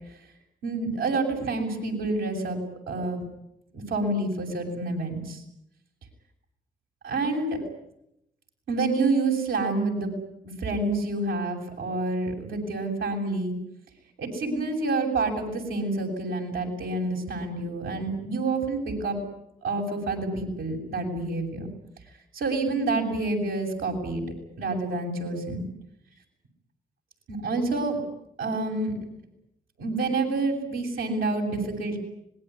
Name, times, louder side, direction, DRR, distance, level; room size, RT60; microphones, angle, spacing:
voice 1, 0.6-2.6 2.9-3.2 3.7-5.4 7.0-7.6 8.7-10.1 10.4-13.5 14.2-19.2 19.6-21.7 22.3-24.2 24.6-25.6 27.3-28.0 28.4-28.9 29.8-32.0, right 3 dB, 80° right, 1 dB, 7.9 m, -28 dB
25.5 x 21.0 x 9.9 m, 0.81 s
supercardioid pair, 40°, 20 cm